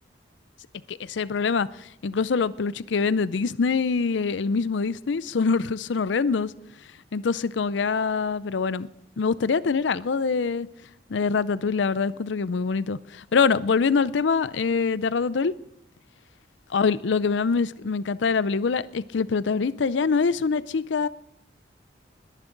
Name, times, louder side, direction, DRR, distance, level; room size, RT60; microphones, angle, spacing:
voice 1, 0.9-1.7 2.0-6.5 7.1-8.9 9.2-10.7 11.1-15.5 16.7-21.1, left 5 dB, 75° left, 0.5 m, -24 dB
21.0 x 11.0 x 3.9 m
head